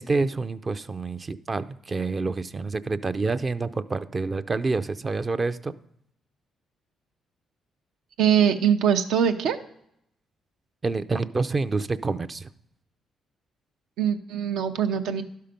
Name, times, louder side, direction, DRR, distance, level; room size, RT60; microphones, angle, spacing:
voice 1, 0.0-5.7 10.8-12.5, right 3 dB, 30° right, 12 dB, 0.4 m, -27 dB
voice 2, 8.2-9.6 14.0-15.2, right 8 dB, 85° right, 7 dB, 0.7 m, -22 dB
11.5 x 5.6 x 5.1 m, 0.74 s
cardioid pair, 90°, 0 cm